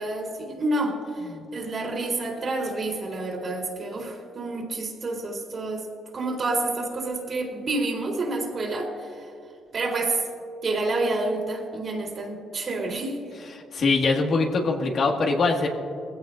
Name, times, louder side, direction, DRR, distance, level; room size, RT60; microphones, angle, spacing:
voice 1, 0.0-5.9 6.1-9.1 9.7-10.2 10.6-13.2, right 2 dB, 45° right, -1 dB, 3.4 m, -28 dB
voice 2, 13.5-15.7, left 3 dB, 55° left, 1 dB, 1.8 m, -23 dB
20.5 x 16.0 x 2.6 m, 2.4 s
cardioid pair, 90°, 0 cm